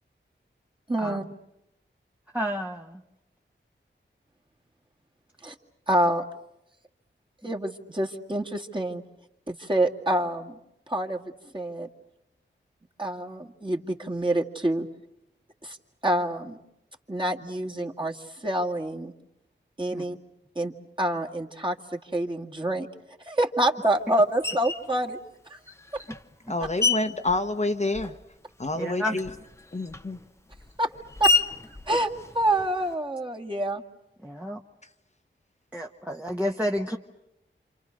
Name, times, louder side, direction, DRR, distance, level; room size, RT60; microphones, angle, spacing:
voice 1, 0.9-1.2 5.4-5.5 5.9-6.2 7.4-9.0 9.5-10.6 10.9-11.9 13.0-14.9 15.6-15.8 16.0-16.6 17.1-19.1 19.8-20.2 20.6-20.7 21.0-22.9 23.3-25.2 25.5-25.6 25.9-26.0 30.8-30.9 31.2-31.3 31.9-33.8, right 1 dB, 25° right, 0 dB, 2.1 m, -27 dB
voice 2, 2.3-3.0 19.9-20.1 28.7-29.2 34.2-34.6 35.7-37.0, equal, 5° right, 1 dB, 1.3 m, -30 dB
Screech, 24.4-24.9 25.7-28.4 28.6-32.9, left 4 dB, 15° left, 1.0 m, -30 dB
voice 3, 26.5-28.2 28.6-29.3 29.7-30.2, left 2 dB, 35° left, 6 dB, 1.2 m, -28 dB
28.0 x 28.0 x 6.5 m, 0.85 s
wide cardioid pair, 80°, 20 cm